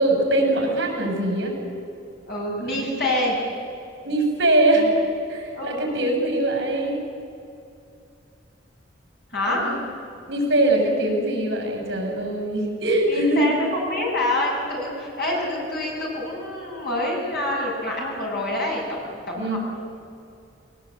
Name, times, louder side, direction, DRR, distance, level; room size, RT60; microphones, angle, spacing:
voice 1, 0.0-1.6 2.6-2.9 4.0-7.0 9.5-9.8 10.3-13.5 19.3-19.6, right 1 dB, 60° right, 1 dB, 6.4 m, -22 dB
voice 2, 2.3-3.4 4.8-4.9 5.5-5.9 9.3-9.7 13.1-19.6, left 1 dB, 55° left, -3 dB, 7.6 m, -26 dB
22.0 x 19.5 x 8.7 m, 2.5 s
head